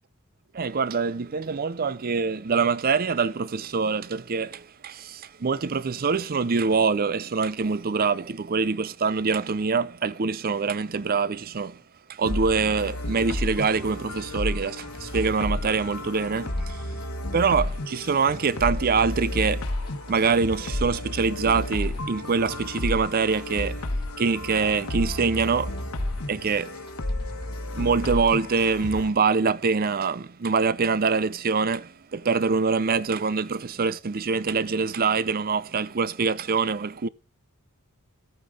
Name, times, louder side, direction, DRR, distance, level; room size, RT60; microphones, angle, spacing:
voice 1, 0.5-11.8 12.1-16.8 17.3-19.7 20.1-23.8 24.2-25.8 26.3-26.8 27.7-37.1, right 5 dB, 40° right, 0.5 m, -25 dB
sound 1, 12.3-29.1, left 1 dB, 70° left, 1.3 m, -32 dB
sound 2, 13.7-27.7, left 1 dB, 20° left, 1.5 m, -46 dB
14.0 x 8.7 x 3.6 m
head